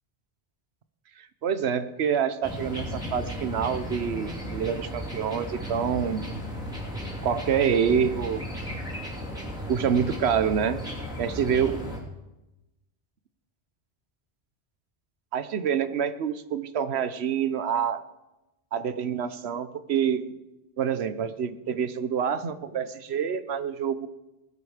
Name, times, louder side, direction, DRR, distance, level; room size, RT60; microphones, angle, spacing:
voice 1, 1.2-6.2 7.2-8.4 9.7-10.8 11.2-11.8 15.3-18.0 18.7-20.3 20.8-24.1, right 7 dB, 90° right, 13 dB, 1.1 m, -27 dB
sound 1, 2.4-12.0, equal, 5° right, 3.0 m, -35 dB
19.5 x 8.0 x 4.9 m, 0.99 s
omnidirectional pair, 1.1 m